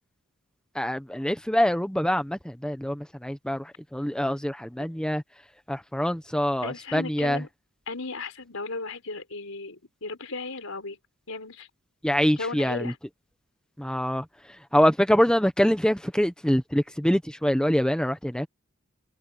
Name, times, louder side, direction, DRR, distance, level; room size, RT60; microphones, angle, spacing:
voice 1, 0.7-5.2 5.7-7.4 12.0-12.9 13.8-18.5, equal, 5° left, 1.0 m, -25 dB
voice 2, 6.6-7.5 7.9-11.0 11.3-11.7 12.4-13.0, left 3 dB, 75° left, 4.6 m, -35 dB
head